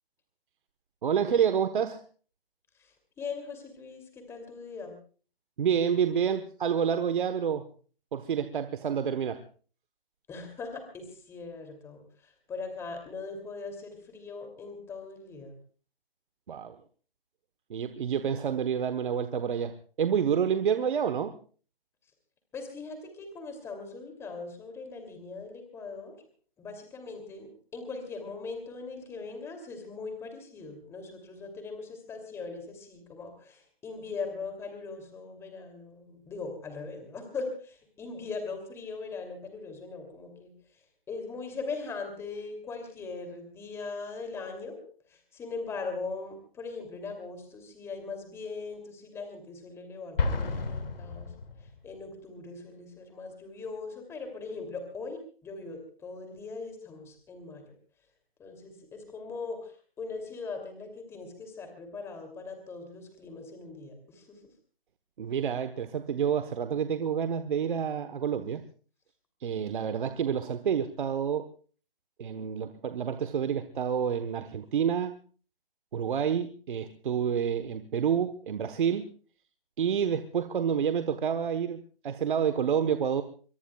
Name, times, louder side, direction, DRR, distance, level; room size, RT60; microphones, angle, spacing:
voice 1, 1.0-2.0 5.6-7.6 8.1-9.4 16.5-16.8 17.7-21.4 65.2-68.6 69.4-71.5 72.2-75.1 75.9-79.1 79.8-83.2, right 7 dB, 55° right, 9 dB, 1.2 m, -28 dB
voice 2, 3.2-5.0 10.3-15.6 22.5-26.1 26.6-40.5 41.1-44.8 45.1-51.3 51.8-57.6 58.4-59.7 60.0-64.4, left 4 dB, 10° left, 5 dB, 2.8 m, -40 dB
Explosion, 50.2-52.0, left 3 dB, 70° left, 2.4 m, -31 dB
23.5 x 22.5 x 2.3 m, 0.40 s
hypercardioid pair, 155°, 30 cm